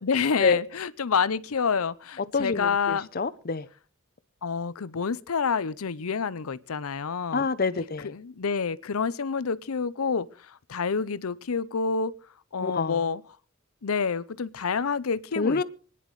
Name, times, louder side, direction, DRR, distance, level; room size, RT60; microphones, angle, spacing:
voice 1, 0.0-3.1 4.4-7.5 8.0-10.3 10.7-12.1 12.5-13.2 13.8-15.6, left 5 dB, 80° left, 0.7 m, -28 dB
voice 2, 2.3-3.7 7.3-8.1 12.6-13.0 15.4-15.6, left 4 dB, 45° left, 0.7 m, -26 dB
25.5 x 10.0 x 3.2 m
head